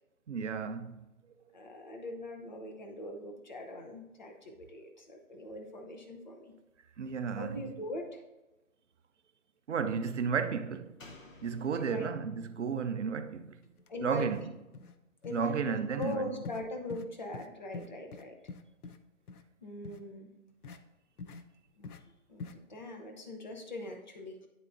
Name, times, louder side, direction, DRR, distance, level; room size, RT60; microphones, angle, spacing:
voice 1, 0.3-1.1 7.0-7.7 9.7-11.0 11.4-13.6 14.0-14.5 15.3-16.3, right 6 dB, 55° right, 0.5 m, -33 dB
voice 2, 1.5-6.5 7.4-8.2 11.7-12.1 13.9-14.3 15.2-18.4 19.6-20.3 21.8-21.9 22.3-24.5, left 1 dB, 30° left, 0.7 m, -41 dB
Slam, 11.0-14.5 14.8-14.9, left 2 dB, 60° left, 1.0 m, -57 dB
sound 1, 13.8-13.9 14.2-14.5 14.7-15.0 15.2-15.4 16.0-16.2 16.4-16.6 16.9-17.1 17.3-17.5 17.7-19.0 19.3-19.4 19.8-20.0 20.6-20.8 21.2-21.4 21.8-22.0 22.4-22.5, left 4 dB, 85° left, 0.7 m, -44 dB
10.0 x 4.0 x 2.6 m
hypercardioid pair, 170°, 43 cm